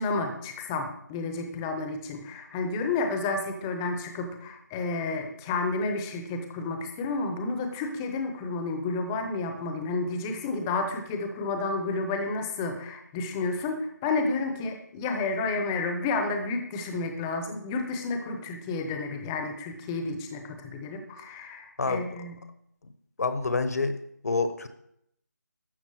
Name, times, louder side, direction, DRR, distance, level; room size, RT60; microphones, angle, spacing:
voice 1, 0.0-22.4, left 3 dB, 10° left, 6 dB, 0.8 m, -31 dB
voice 2, 23.2-24.0 24.2-24.7, left 3 dB, 60° left, 10 dB, 1.2 m, -27 dB
12.5 x 8.1 x 4.8 m, 0.74 s
figure-of-eight pair, 165°, 10 cm